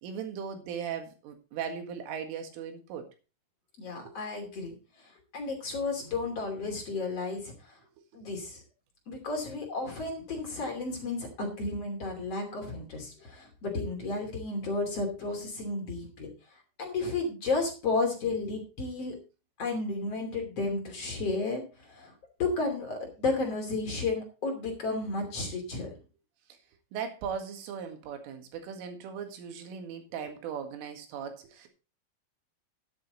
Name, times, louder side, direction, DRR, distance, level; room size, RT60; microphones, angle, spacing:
voice 1, 0.0-3.1 4.1-4.2 26.9-31.7, right 7 dB, 80° right, 6 dB, 4.3 m, -38 dB
voice 2, 3.8-7.8 8.1-8.6 9.1-16.3 16.8-19.1 19.6-22.1 22.4-25.9, left 3 dB, 35° left, 2 dB, 3.0 m, -33 dB
12.0 x 9.5 x 4.0 m, 0.33 s
omnidirectional pair, 5.7 m